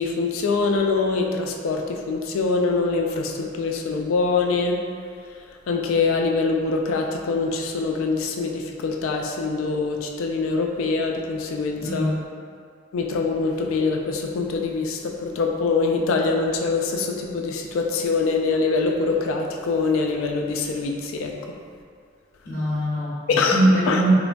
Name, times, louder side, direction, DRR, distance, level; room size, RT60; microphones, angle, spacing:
voice 1, 0.0-4.8 5.7-12.1 12.9-21.3 23.3-24.0, left 4 dB, 80° left, 2 dB, 0.3 m, -24 dB
voice 2, 11.8-12.2 22.4-24.1, right 1 dB, 45° left, -12 dB, 0.6 m, -23 dB
3.0 x 2.2 x 2.5 m, 2.1 s
head